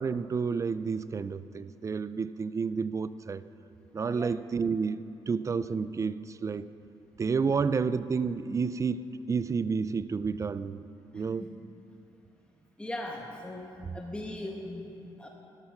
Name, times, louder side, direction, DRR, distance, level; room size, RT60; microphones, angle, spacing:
voice 1, 0.0-3.4 3.9-6.7 7.2-10.8 11.1-11.4, right 5 dB, 30° right, 15 dB, 0.4 m, -30 dB
voice 2, 11.1-11.5 12.8-15.3, left 1 dB, 10° left, 0 dB, 1.5 m, -39 dB
13.0 x 12.5 x 5.9 m, 2.7 s
cardioid pair, 90°, 10 cm